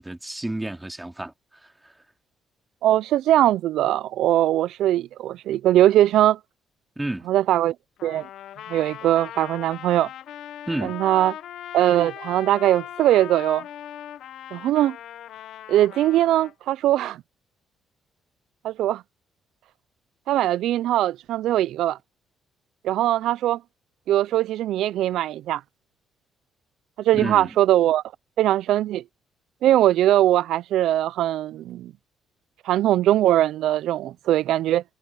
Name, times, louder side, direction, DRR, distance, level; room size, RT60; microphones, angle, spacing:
voice 1, 0.0-2.0 7.0-7.3 10.7-11.0 27.1-27.6, right 1 dB, 10° right, 2.5 m, -31 dB
voice 2, 2.8-6.4 7.3-7.7 8.0-8.3 8.7-10.1 10.8-11.3 11.7-13.6 14.5-15.0 15.7-17.2 18.6-19.0 20.3-22.0 22.8-23.6 24.1-25.6 27.0-28.0 28.4-29.0 29.6-31.9 32.6-34.8, right 13 dB, 85° right, 0.4 m, -21 dB
Trumpet, 8.0-16.5, left 11 dB, 75° left, 1.0 m, -39 dB
cardioid pair, 90°, 0 cm